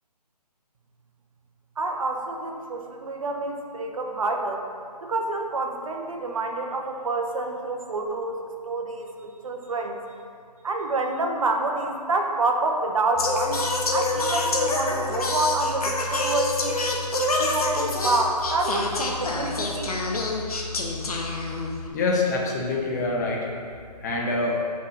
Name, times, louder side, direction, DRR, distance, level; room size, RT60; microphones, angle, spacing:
voice 1, 1.8-4.6 5.0-10.0 10.6-16.8 17.4-20.0, right 2 dB, 55° right, 2 dB, 1.0 m, -28 dB
Singing, 13.2-21.9, left 2 dB, 60° left, 1.2 m, -26 dB
voice 2, 21.9-23.4 24.0-24.6, left 3 dB, 25° left, -1 dB, 0.9 m, -25 dB
5.7 x 4.6 x 6.3 m, 2.3 s
figure-of-eight pair, 155°, 21 cm